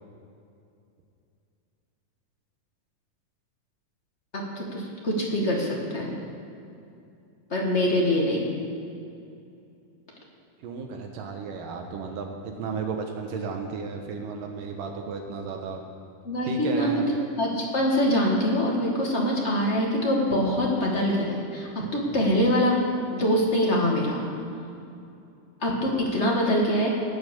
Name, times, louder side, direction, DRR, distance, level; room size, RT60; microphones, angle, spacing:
voice 1, 4.3-6.2 7.5-8.5 16.2-17.0 17.4-22.8 23.1-24.2 25.6-26.9, equal, 35° left, -2 dB, 1.0 m, -24 dB
voice 2, 10.6-15.8 16.5-17.2, right 5 dB, 75° right, 3 dB, 2.5 m, -33 dB
15.5 x 8.8 x 6.9 m, 2.6 s
omnidirectional pair, 4.1 m